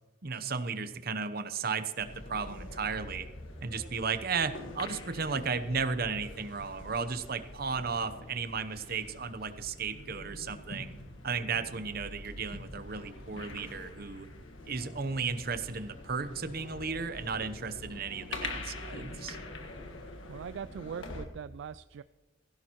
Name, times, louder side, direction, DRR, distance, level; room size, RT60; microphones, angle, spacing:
voice 1, 0.2-3.3 3.6-10.9 11.2-14.3 14.7-19.4, right 5 dB, 50° right, 10 dB, 0.8 m, -34 dB
sound 1, 2.0-21.2, left 2 dB, 80° left, 1.5 m, -45 dB
voice 2, 20.3-22.0, right 7 dB, 65° right, 14 dB, 0.3 m, -41 dB
17.0 x 15.5 x 3.0 m, 1.2 s
head